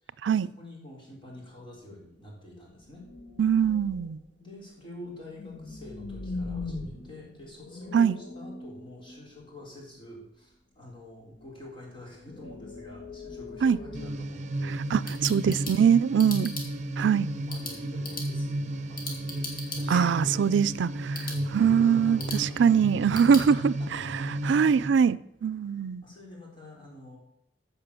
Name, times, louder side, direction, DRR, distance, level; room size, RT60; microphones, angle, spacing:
voice 1, 0.0-3.1 4.4-15.0 17.1-20.5 21.3-24.4 25.7-27.2, left 1 dB, 30° left, 4.1 m, -47 dB
sound 1, 1.4-1.6 1.9-2.1 2.8-4.3 4.9-9.7 11.2-11.6 12.0-15.0, left 3 dB, 75° left, 1.7 m, -41 dB
voice 2, 3.4-4.2 7.9-8.1 13.6-13.8 14.9-16.5 17.0-17.3 19.9-26.0, right 7 dB, 90° right, 0.4 m, -23 dB
sound 2, 13.9-24.9, right 1 dB, 40° right, 0.9 m, -33 dB
sound 3, 14.7-23.5, left 2 dB, 55° left, 2.8 m, -42 dB
14.5 x 5.7 x 6.9 m
head